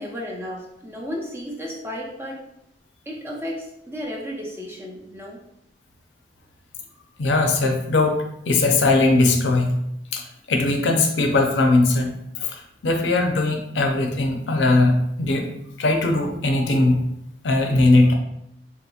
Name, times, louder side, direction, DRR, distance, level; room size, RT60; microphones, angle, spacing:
voice 1, 0.0-2.4 3.1-5.4, equal, 15° right, -2 dB, 0.5 m, -33 dB
voice 2, 7.2-9.8 10.1-15.5 15.8-17.0 17.4-18.1, left 2 dB, 75° left, 3 dB, 0.5 m, -20 dB
3.6 x 2.7 x 2.3 m, 0.78 s
head